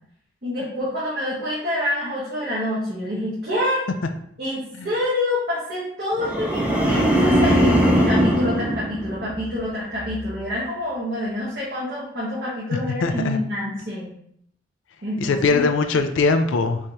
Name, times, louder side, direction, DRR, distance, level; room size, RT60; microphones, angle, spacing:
voice 1, 0.4-3.8 4.4-14.1 15.0-15.7, left 1 dB, 55° right, -8 dB, 1.5 m, -27 dB
sound 1, 6.2-9.6 10.0-10.4, equal, 5° right, 0.6 m, -20 dB
voice 2, 13.0-13.4 15.2-16.8, left 4 dB, 80° left, 7 dB, 0.4 m, -20 dB
5.5 x 2.9 x 3.2 m, 0.68 s
head